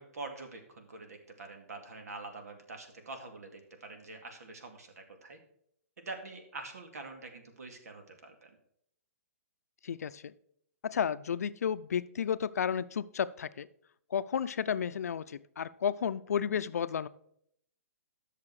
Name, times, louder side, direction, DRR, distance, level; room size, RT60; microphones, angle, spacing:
voice 1, 0.0-5.4 6.0-8.5, right 3 dB, 85° right, 5 dB, 2.4 m, -45 dB
voice 2, 9.8-10.3 10.8-13.7 14.1-17.1, left 8 dB, 90° left, 15 dB, 0.5 m, -32 dB
11.0 x 6.7 x 4.8 m, 0.70 s
hypercardioid pair, 175°, 8 cm